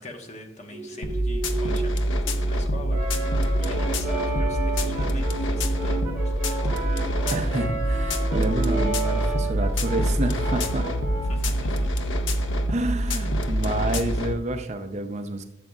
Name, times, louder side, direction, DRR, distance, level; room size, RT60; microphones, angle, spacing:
voice 1, 0.0-6.6 11.2-11.9, left 1 dB, 35° left, 3 dB, 1.2 m, -42 dB
sound 1, 0.7-8.9, right 3 dB, 20° left, 1.6 m, -36 dB
sound 2, 1.0-14.3, equal, 75° left, 0.8 m, -25 dB
Brass instrument, 2.9-11.5, right 3 dB, 10° right, 2.9 m, -33 dB
voice 2, 7.3-10.9 12.7-15.4, right 1 dB, 35° right, 7 dB, 0.6 m, -29 dB
12.5 x 7.1 x 2.4 m, 0.85 s
head